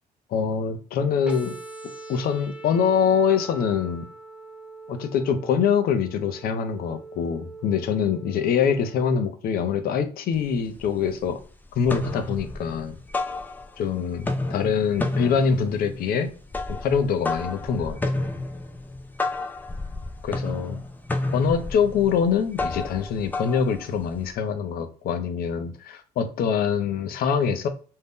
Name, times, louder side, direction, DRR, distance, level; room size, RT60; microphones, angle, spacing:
voice 1, 0.3-1.5 2.1-4.1 4.9-11.4 11.7-13.0 13.8-16.3 16.8-18.0 20.2-20.8 21.3-27.7, left 7 dB, 65° left, 8 dB, 0.6 m, -24 dB
sound 1, 1.3-9.3, right 2 dB, 5° right, 0.9 m, -42 dB
sound 2, 10.3-10.4 10.8-11.4 11.7-13.9 14.2-24.3, left 2 dB, 10° left, 0.4 m, -31 dB
2.6 x 2.1 x 3.5 m, 0.40 s
cardioid pair, 110°, 17 cm